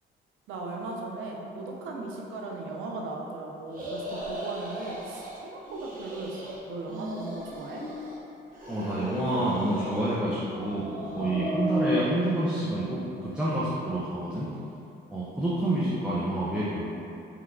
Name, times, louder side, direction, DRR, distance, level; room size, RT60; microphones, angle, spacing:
voice 1, 0.5-7.8, right 2 dB, 80° right, -1 dB, 0.5 m, -37 dB
sound 1, 3.7-5.4 5.7-6.5 6.8-8.2 8.5-10.2 10.5-12.0, equal, 45° right, 0.8 m, -35 dB
voice 2, 8.7-10.9 11.1-14.5 15.1-16.9, right 1 dB, 5° right, -8 dB, 0.5 m, -28 dB
3.3 x 2.8 x 2.5 m, 2.7 s
cardioid pair, 90°, 20 cm